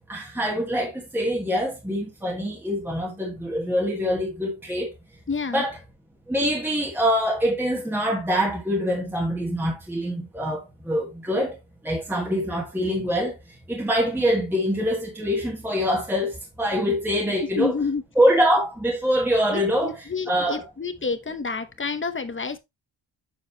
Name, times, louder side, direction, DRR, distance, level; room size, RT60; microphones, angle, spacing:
voice 1, 0.1-4.9 5.5-5.8 6.3-11.6 11.8-13.4 13.7-17.7 18.2-20.6, equal, 5° right, 1.2 m, -24 dB
voice 2, 5.3-5.6 17.5-18.0 19.5-22.6, left 4 dB, 25° left, 0.8 m, -29 dB
7.2 x 6.3 x 2.7 m
wide cardioid pair, 175°, 45 cm